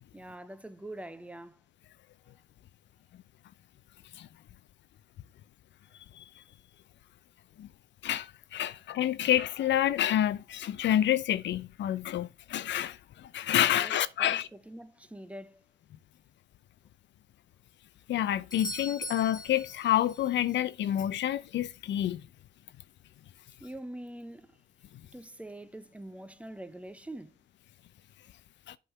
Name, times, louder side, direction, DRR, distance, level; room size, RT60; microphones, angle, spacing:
voice 1, 0.1-1.6 13.7-15.6 23.6-24.6 25.1-27.4, right 1 dB, 5° right, 0.7 m, -44 dB
voice 2, 8.0-14.5 18.1-22.2 28.7-28.8, left 11 dB, 65° left, 0.6 m, -28 dB
Doorbell, 18.5-20.3 24.4-24.5, left 1 dB, 20° left, 1.4 m, -41 dB
8.2 x 3.8 x 5.7 m
cardioid pair, 90°, 20 cm